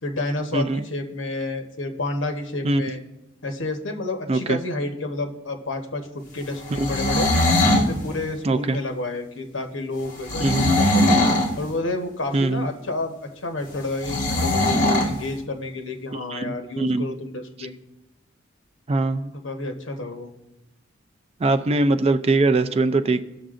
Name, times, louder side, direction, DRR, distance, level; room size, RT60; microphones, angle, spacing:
voice 1, 0.0-3.0 3.4-7.3 7.7-11.2 11.6-13.2 13.4-17.8 19.3-20.3, left 2 dB, 70° left, 4 dB, 1.1 m, -30 dB
voice 2, 4.3-4.6 8.4-8.8 10.4-10.7 12.3-12.7 16.1-17.1 18.9-19.3 21.4-23.2, right 2 dB, 30° right, 9 dB, 0.4 m, -22 dB
sound 1, 6.7-7.9 10.3-11.5 14.0-15.1, left 1 dB, 45° left, 1.5 m, -20 dB
18.0 x 6.6 x 2.5 m, 0.94 s
head